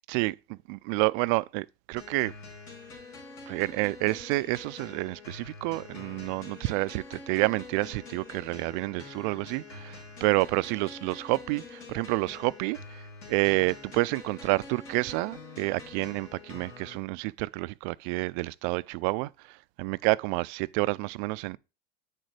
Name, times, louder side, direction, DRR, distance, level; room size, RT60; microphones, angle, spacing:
voice 1, 0.1-2.3 3.5-13.0 13.3-21.6, right 23 dB, 50° right, 0.4 m, -29 dB
sound 1, 2.0-17.0, left 3 dB, 75° left, 3.9 m, -46 dB
8.9 x 6.6 x 3.2 m
hypercardioid pair, 110°, 32 cm